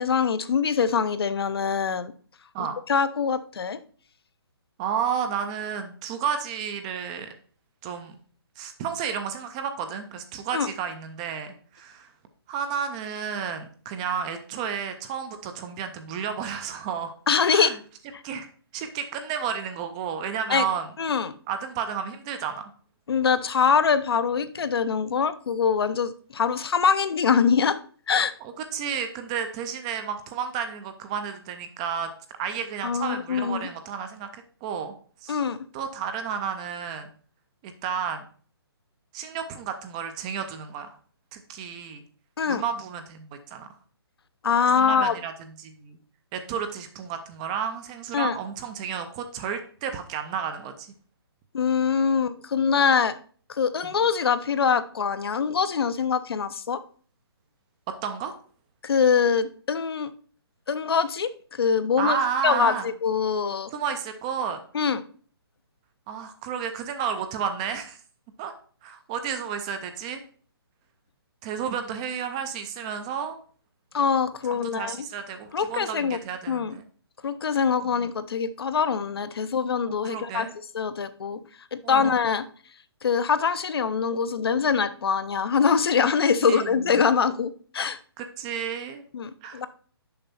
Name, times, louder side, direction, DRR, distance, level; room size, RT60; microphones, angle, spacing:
voice 1, 0.0-2.1 2.9-3.8 10.5-10.7 17.3-17.8 20.5-20.7 21.0-21.3 23.1-27.8 28.1-28.3 32.8-33.7 35.3-35.6 42.4-42.6 44.4-45.1 48.1-48.4 51.5-53.2 53.5-56.8 58.8-60.1 60.7-63.7 64.7-65.0 73.9-75.0 75.5-76.2 76.5-76.8 77.2-80.5 80.7-82.4 83.0-88.0 89.1-89.7, left 6 dB, 65° left, 12 dB, 0.7 m, -24 dB
voice 2, 4.8-7.3 7.8-8.1 8.6-12.1 12.5-17.1 17.5-17.7 18.2-18.5 18.7-20.9 21.5-22.7 28.7-32.1 32.4-34.9 35.2-35.4 35.7-37.1 37.6-38.2 39.1-40.9 41.3-42.0 42.5-43.7 44.7-45.3 45.6-46.0 46.3-50.9 58.0-58.3 62.0-62.8 63.7-64.6 66.1-68.0 68.4-68.5 68.8-70.2 71.4-73.4 74.7-76.8 77.8-77.9 80.0-80.5 81.8-82.1 86.4-86.8 88.2-89.0 89.4-89.7, right 7 dB, 15° right, 8 dB, 0.4 m, -31 dB
6.8 x 5.3 x 4.2 m, 0.43 s
hypercardioid pair, 160°, 13 cm